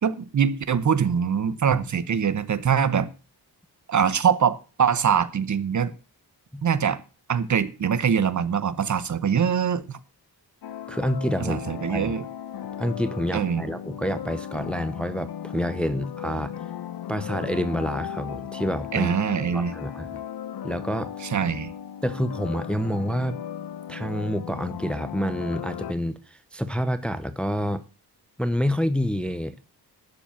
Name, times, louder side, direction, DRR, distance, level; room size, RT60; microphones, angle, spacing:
voice 1, 0.0-3.1 3.9-5.9 6.6-7.0 7.3-10.0 11.4-12.2 13.3-13.7 18.9-19.7 21.3-21.7, right 7 dB, 45° right, 1.0 m, -23 dB
sound 1, 10.6-25.9, left 9 dB, 65° left, 0.9 m, -36 dB
voice 2, 10.9-12.2 12.8-16.5 17.1-19.1 19.5-20.2 20.6-21.1 22.0-23.4 23.9-27.8 28.4-29.6, equal, 5° left, 0.6 m, -28 dB
12.0 x 7.4 x 7.1 m
wide cardioid pair, 165°, 41 cm